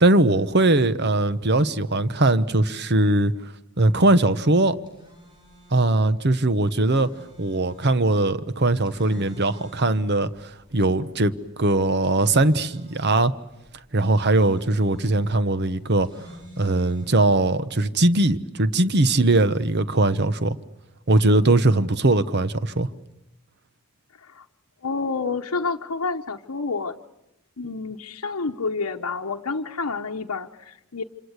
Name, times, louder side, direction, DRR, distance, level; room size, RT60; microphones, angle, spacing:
voice 1, 0.0-3.3 3.8-4.8 5.7-7.1 7.4-10.3 10.7-13.3 13.9-16.1 16.6-20.6 21.1-22.9, right 2 dB, 50° right, 1.1 m, -20 dB
sound 1, 4.7-17.6, right 1 dB, 20° right, 7.7 m, -50 dB
voice 2, 24.1-24.5 24.8-27.0 27.6-31.0, left 4 dB, 70° left, 0.9 m, -29 dB
27.0 x 27.0 x 8.1 m
head